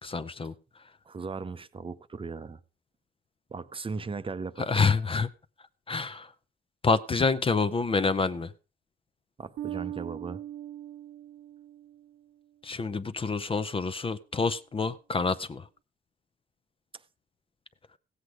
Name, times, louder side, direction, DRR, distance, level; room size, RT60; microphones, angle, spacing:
voice 1, 0.0-0.5 4.6-5.3 5.9-6.3 6.8-8.5 12.6-15.6, left 4 dB, 25° left, 0.6 m, -27 dB
voice 2, 1.1-2.6 3.5-4.9 9.4-10.4, right 4 dB, 25° right, 0.7 m, -37 dB
Bass guitar, 9.6-12.2, right 12 dB, 75° right, 0.9 m, -40 dB
15.5 x 8.0 x 4.8 m
cardioid pair, 90°, 20 cm